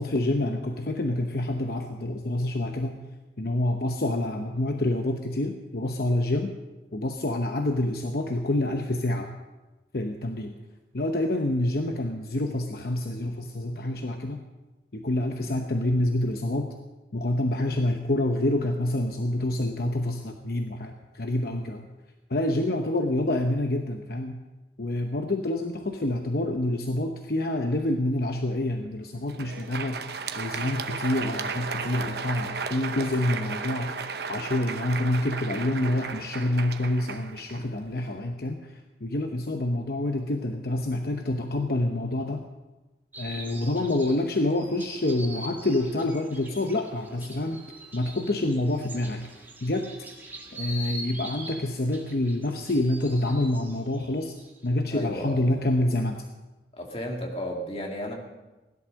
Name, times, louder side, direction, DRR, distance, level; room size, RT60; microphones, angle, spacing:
voice 1, 0.0-3.0 3.4-6.5 6.9-9.3 9.9-10.5 10.9-14.4 14.9-16.7 17.1-21.9 22.3-24.4 24.8-30.0 30.3-34.0 34.3-38.7 39.0-42.4 43.2-47.6 47.9-49.2 49.6-49.9 50.5-54.4 54.6-56.2, left 1 dB, 55° left, 4 dB, 0.9 m, -27 dB
Crowd, 29.2-38.1, right 5 dB, 60° right, 0.9 m, -35 dB
sound 1, 43.1-54.7, right 1 dB, 10° right, 1.8 m, -43 dB
voice 2, 54.9-55.5 56.7-58.1, equal, 30° left, 1 dB, 2.2 m, -33 dB
17.0 x 11.5 x 6.4 m, 1.1 s
head